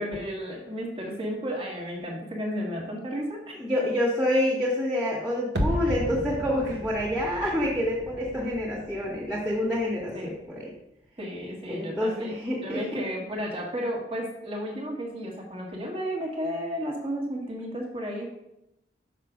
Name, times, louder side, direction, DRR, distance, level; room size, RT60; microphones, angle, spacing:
voice 1, 0.0-3.6 10.1-10.3 11.2-12.3 12.6-18.3, equal, 30° right, -1 dB, 1.3 m, -33 dB
voice 2, 3.6-10.7 11.7-12.8, left 1 dB, 5° right, -8 dB, 1.5 m, -27 dB
sound 1, 5.6-10.5 10.8-10.9, equal, 80° right, 1.0 m, -34 dB
5.9 x 5.9 x 4.9 m, 0.85 s
head